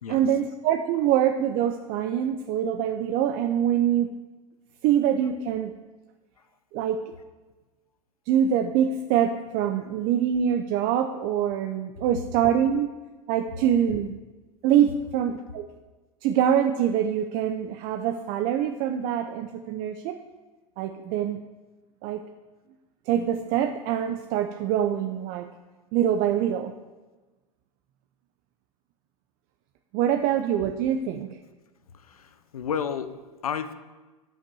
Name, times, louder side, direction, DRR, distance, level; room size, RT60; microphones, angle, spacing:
voice 1, 0.1-4.1 4.8-5.7 6.7-7.0 8.3-12.9 13.3-14.1 14.6-15.7 16.2-20.2 20.8-21.4 22.0-22.2 23.1-25.5 25.9-26.7 29.9-31.4, right 9 dB, 50° right, 6 dB, 0.7 m, -24 dB
voice 2, 31.9-33.2 33.4-33.7, left 7 dB, 90° left, 10 dB, 0.9 m, -32 dB
10.0 x 5.8 x 7.0 m, 1.2 s
hypercardioid pair, 100°, 18 cm